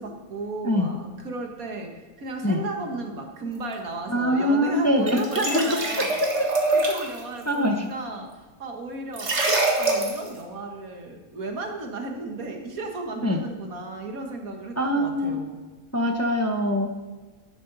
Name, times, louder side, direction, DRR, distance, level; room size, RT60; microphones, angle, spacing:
voice 1, 0.0-6.2 6.7-9.4 9.8-15.6, right 3 dB, 80° right, 3 dB, 2.0 m, -34 dB
voice 2, 4.1-6.1 6.4-6.5 7.5-7.9 13.2-13.4 14.8-15.4 15.9-17.0, equal, 15° left, 4 dB, 0.8 m, -23 dB
sound 1, 5.1-7.2 9.1-10.3, right 2 dB, 50° right, 2.0 m, -24 dB
12.0 x 11.0 x 4.0 m, 1.3 s
omnidirectional pair, 1.5 m